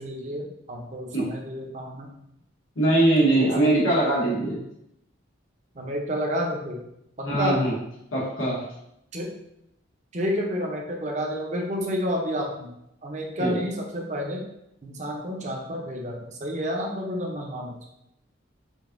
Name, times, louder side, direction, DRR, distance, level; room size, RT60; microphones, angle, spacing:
voice 1, 0.0-2.1 3.3-3.9 5.7-6.8 7.2-7.6 9.1-9.3 10.1-12.7 13.0-14.4 14.8-17.7, equal, 35° right, 0 dB, 0.6 m, -30 dB
voice 2, 2.8-4.6 7.2-7.7 8.1-8.6 13.4-13.6, right 1 dB, 85° left, -6 dB, 1.1 m, -21 dB
5.1 x 2.7 x 2.5 m, 0.80 s
head